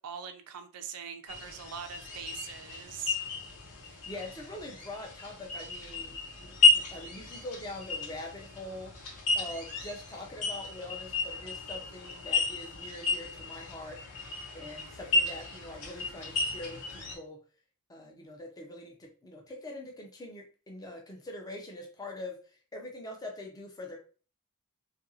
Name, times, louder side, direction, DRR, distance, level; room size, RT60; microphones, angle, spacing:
voice 1, 0.0-3.2, right 7 dB, 80° right, 6 dB, 0.5 m, -42 dB
sound 1, 1.3-17.2, left 3 dB, 85° left, 0.9 m, -32 dB
voice 2, 3.8-14.0 14.5-17.4 17.9-24.0, left 1 dB, 15° left, 1 dB, 0.5 m, -43 dB
2.8 x 2.5 x 2.6 m, 0.38 s
head